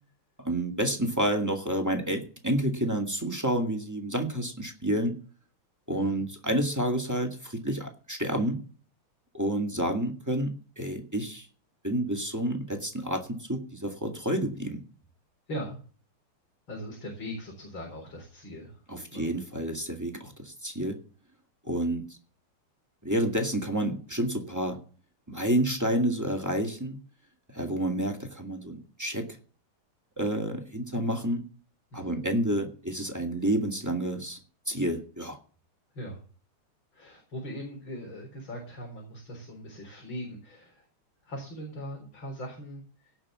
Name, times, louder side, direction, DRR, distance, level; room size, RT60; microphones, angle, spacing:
voice 1, 0.4-5.2 5.9-8.6 9.3-11.5 11.8-14.8 18.9-21.0 21.6-22.0 23.0-24.8 25.3-27.0 27.5-29.3 30.2-31.4 31.9-34.4 34.7-35.4, right 1 dB, 10° right, 3 dB, 1.8 m, -29 dB
voice 2, 5.9-6.2 15.5-15.8 16.7-18.8 19.1-19.3 31.9-32.2 35.9-36.2 36.9-40.9 41.2-43.2, equal, 65° left, 1 dB, 4.8 m, -40 dB
17.5 x 6.2 x 7.4 m, 0.40 s
omnidirectional pair, 2.4 m